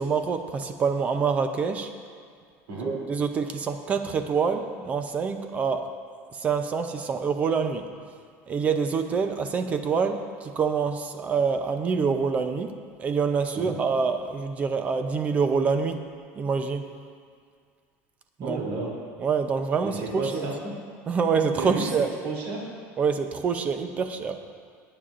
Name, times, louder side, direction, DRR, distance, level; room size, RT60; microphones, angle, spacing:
voice 1, 0.0-1.9 2.8-5.9 6.4-7.9 8.5-12.7 13.0-16.0 16.4-16.8 18.4-18.6 19.2-20.4 21.1-22.1 23.0-24.3, right 5 dB, 20° right, 7 dB, 0.6 m, -26 dB
voice 2, 18.4-18.9 19.8-20.7 21.5-21.9 22.2-22.7, right 3 dB, 65° right, -3 dB, 2.9 m, -32 dB
18.0 x 8.8 x 2.5 m, 2.1 s
cardioid pair, 170°, 6 cm